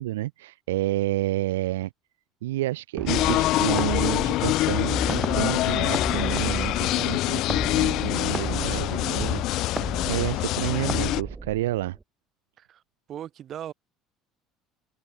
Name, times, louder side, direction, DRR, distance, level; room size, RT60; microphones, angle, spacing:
voice 1, 0.0-1.9 2.4-9.7 10.0-12.0, right 16 dB, 75° right, 2.8 m, -30 dB
sound 1, 3.0-12.0, right 3 dB, 20° right, 4.1 m, -35 dB
sound 2, 3.1-11.2, left 17 dB, 55° left, 1.3 m, -25 dB
voice 2, 13.1-13.7, right 10 dB, 45° right, 5.2 m, -38 dB
figure-of-eight pair, 60°, 0 cm